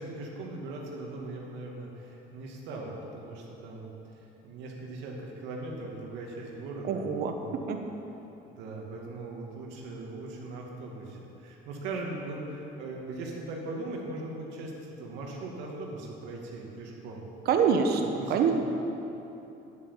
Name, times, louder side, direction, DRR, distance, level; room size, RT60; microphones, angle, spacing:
voice 1, 0.0-7.6 8.4-17.3 18.0-18.5, right 2 dB, 80° right, -1 dB, 2.5 m, -39 dB
voice 2, 6.9-7.3 7.7-7.8 17.5-18.0 18.3-18.5, right 6 dB, 60° right, 4 dB, 1.2 m, -24 dB
10.0 x 8.2 x 8.4 m, 2.9 s
cardioid pair, 110°, 18 cm